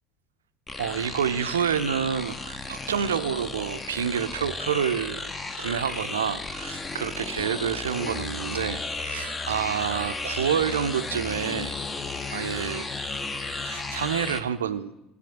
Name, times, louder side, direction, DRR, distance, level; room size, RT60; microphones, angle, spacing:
sound 1, 0.7-14.4, left 3 dB, 20° left, 0.7 m, -34 dB
voice 1, 0.8-5.2 5.5-11.8 12.3-12.9 13.6-14.9, right 8 dB, 75° right, 13 dB, 0.4 m, -28 dB
7.7 x 6.0 x 6.8 m, 0.89 s
figure-of-eight pair, 65°, 0 cm